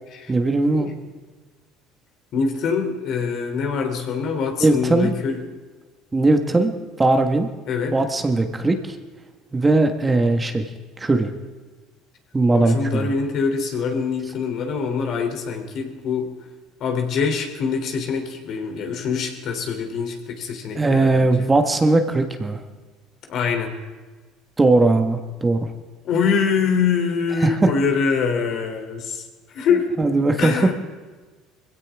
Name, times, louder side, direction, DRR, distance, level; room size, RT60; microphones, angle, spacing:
voice 1, 0.3-0.9 4.6-5.1 6.1-7.5 7.9-9.0 9.5-10.7 11.0-11.3 12.3-13.1 20.7-22.6 24.6-25.7 27.4-27.7 30.0-30.7, right 2 dB, 20° right, 6 dB, 1.5 m, -19 dB
voice 2, 2.3-5.5 7.7-8.0 12.5-16.3 16.8-21.5 23.3-23.8 26.0-29.2 29.5-29.9 30.4-30.7, left 5 dB, 60° left, 4 dB, 3.1 m, -24 dB
21.5 x 16.5 x 3.6 m, 1.3 s
supercardioid pair, 85°, 0 cm